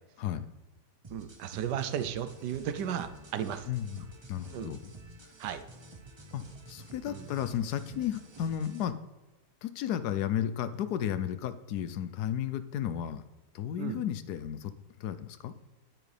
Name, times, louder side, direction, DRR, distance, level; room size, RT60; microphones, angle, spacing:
sound 1, 1.0-8.8, right 3 dB, 40° right, 0.3 m, -50 dB
voice 1, 1.1-3.7 4.5-4.7 5.4-5.6 7.1-7.3 13.8-14.0, right 9 dB, 85° right, 11 dB, 1.3 m, -34 dB
voice 2, 3.7-4.9 6.3-9.0 9.6-13.2 13.5-14.7 15.0-15.5, left 10 dB, 75° left, 12 dB, 1.1 m, -33 dB
9.6 x 9.0 x 3.3 m, 1.1 s
omnidirectional pair, 1.8 m